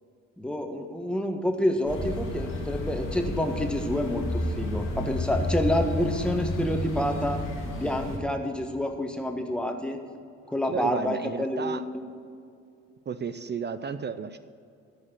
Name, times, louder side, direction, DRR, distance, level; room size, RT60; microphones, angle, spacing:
voice 1, 0.4-7.4 7.7-10.0 10.5-12.1, left 1 dB, 5° left, 4 dB, 1.6 m, -28 dB
sound 1, 1.8-8.2, left 1 dB, 75° left, 2.7 m, -31 dB
voice 2, 10.6-11.8 13.1-14.4, right 6 dB, 35° right, 11 dB, 0.6 m, -33 dB
13.5 x 5.0 x 8.7 m, 2.4 s
hypercardioid pair, 55°, 32 cm